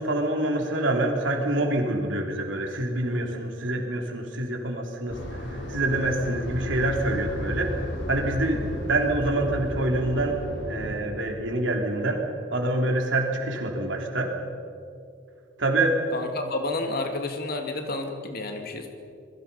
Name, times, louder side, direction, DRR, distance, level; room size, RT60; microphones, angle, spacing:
voice 1, 0.0-7.7 8.1-10.4 10.7-12.2 12.5-14.3 15.6-16.0, right 1 dB, 90° right, 2 dB, 3.6 m, -26 dB
sound 1, 5.1-10.9, equal, 90° left, 5.9 m, -33 dB
voice 2, 16.1-18.9, left 2 dB, 55° left, 4 dB, 2.4 m, -30 dB
27.0 x 21.5 x 5.6 m, 2.5 s
head